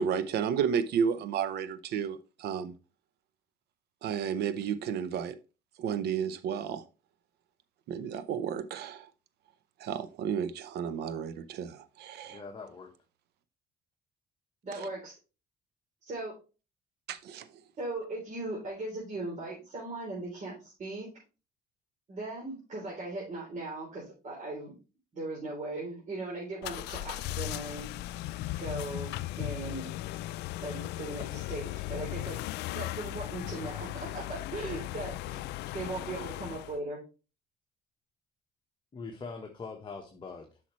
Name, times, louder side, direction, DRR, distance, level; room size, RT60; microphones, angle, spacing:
voice 1, 0.0-2.7 4.0-5.3 5.8-6.8 7.9-9.0 9.8-12.4 17.1-17.4, right 7 dB, 75° right, 0.8 m, -32 dB
voice 2, 12.3-12.9 38.9-40.6, left 4 dB, 30° left, 1.2 m, -42 dB
voice 3, 14.6-15.1 16.1-16.3 17.8-21.1 22.1-24.8 25.1-27.9 28.6-29.9 30.6-32.4 32.7-37.0, right 2 dB, 45° right, 3.5 m, -38 dB
sound 1, 26.6-36.8, left 16 dB, 80° left, 0.4 m, -37 dB
8.4 x 5.9 x 3.1 m
cardioid pair, 110°, 17 cm